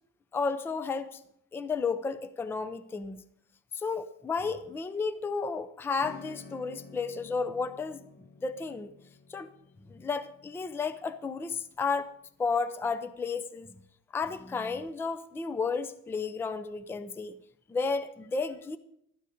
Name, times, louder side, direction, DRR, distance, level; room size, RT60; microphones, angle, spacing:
voice 1, 0.3-1.2 1.5-3.2 3.7-8.0 8.4-8.9 9.3-9.5 9.9-12.1 12.4-13.7 14.1-17.4 17.7-18.8, left 4 dB, 5° left, 12 dB, 0.4 m, -32 dB
Acoustic guitar / Strum, 6.0-12.2, left 5 dB, 30° left, 0.8 m, -51 dB
13.0 x 9.5 x 5.0 m, 0.73 s
cardioid pair, 160°, 34 cm